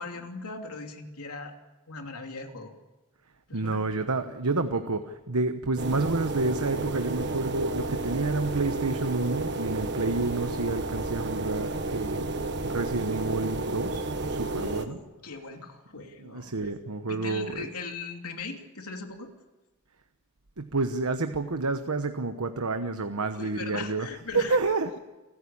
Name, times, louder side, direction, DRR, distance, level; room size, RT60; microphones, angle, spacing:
voice 1, 0.0-1.5 1.9-2.7 3.5-3.8 14.5-16.5 17.0-19.3 23.4-24.6, left 3 dB, 85° left, 4 dB, 2.9 m, -39 dB
voice 2, 3.5-12.3 12.6-15.0 15.9-17.7 20.6-24.1 24.3-25.0, right 3 dB, 85° right, 8 dB, 1.2 m, -29 dB
sound 1, 5.8-14.9, right 2 dB, 50° right, 1.5 m, -31 dB
29.0 x 14.5 x 8.7 m, 1.1 s
head